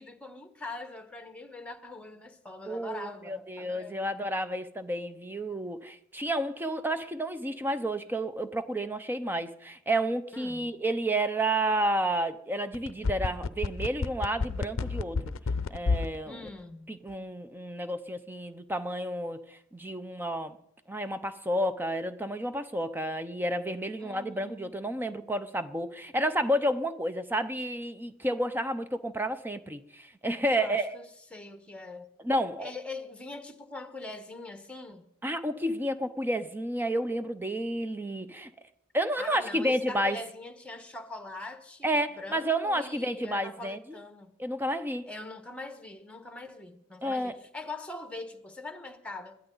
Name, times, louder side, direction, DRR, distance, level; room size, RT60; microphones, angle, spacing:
voice 1, 0.0-4.1 10.3-10.8 16.2-16.9 24.0-24.7 30.5-32.1 32.6-35.0 39.2-44.3 45.1-49.4, left 2 dB, 5° left, 1.3 m, -42 dB
voice 2, 2.7-15.3 15.7-16.5 16.9-20.6 20.9-31.0 32.2-32.7 35.2-38.5 38.9-40.2 41.8-44.0 44.4-45.0 47.0-47.4, right 1 dB, 10° right, 0.7 m, -31 dB
sound 1, 12.7-16.2 16.5-16.6, left 4 dB, 65° left, 0.6 m, -28 dB
21.5 x 14.0 x 3.9 m
head